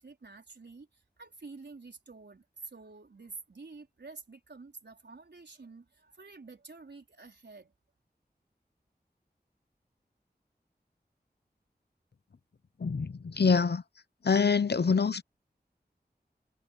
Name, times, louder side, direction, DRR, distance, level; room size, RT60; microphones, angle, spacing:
voice 1, 0.0-7.7, right 3 dB, 85° right, 4.5 m, -49 dB
voice 2, 12.8-13.8 14.2-15.2, left 5 dB, 70° left, 0.8 m, -25 dB
wide cardioid pair, 70°, 17 cm